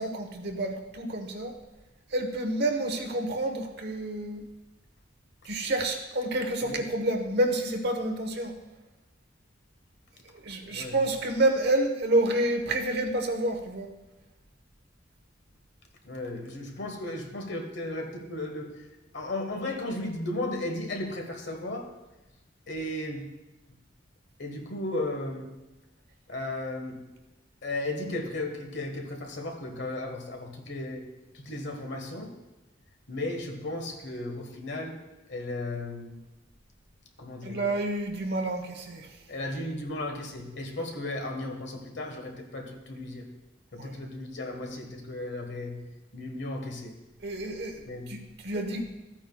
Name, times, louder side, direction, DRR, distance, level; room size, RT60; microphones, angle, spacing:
voice 1, 0.0-1.5 2.1-4.4 5.4-8.5 10.4-13.9 37.4-39.1 43.8-44.0 47.2-47.8 48.1-48.9, right 1 dB, 55° right, 4 dB, 1.1 m, -29 dB
voice 2, 16.0-18.7 19.1-21.9 22.7-23.3 24.4-25.5 26.3-27.0 27.6-31.1 31.3-32.3 33.1-35.0 35.3-36.1 37.2-37.6 39.3-43.3 43.7-45.8 46.1-46.9 47.8-48.2, left 2 dB, 65° left, 3 dB, 1.4 m, -35 dB
14.0 x 8.9 x 2.3 m, 1.1 s
head